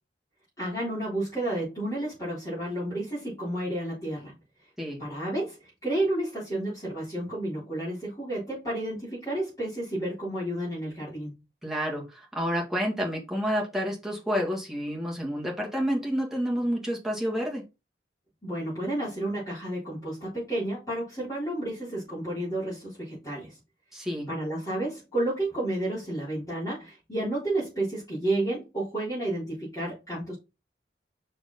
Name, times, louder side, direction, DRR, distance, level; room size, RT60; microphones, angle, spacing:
voice 1, 0.6-4.3 5.0-11.3 18.4-23.6 24.3-30.3, right 1 dB, 20° left, 3.9 m, -31 dB
voice 2, 11.6-17.6 23.9-24.3, equal, ahead, 2.0 m, -29 dB
5.7 x 4.6 x 4.1 m
head